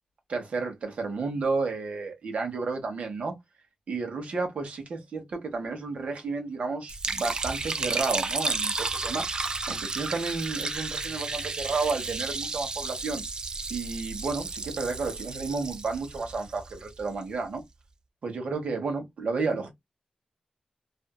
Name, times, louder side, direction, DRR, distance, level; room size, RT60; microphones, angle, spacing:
voice 1, 0.3-3.3 3.9-9.3 9.7-13.2 13.7-17.6 18.2-19.7, right 4 dB, 65° right, 1.2 m, -31 dB
Liquid, 6.9-17.1, right 3 dB, 35° right, 0.4 m, -32 dB
2.7 x 2.5 x 2.2 m
wide cardioid pair, 165°, 2 cm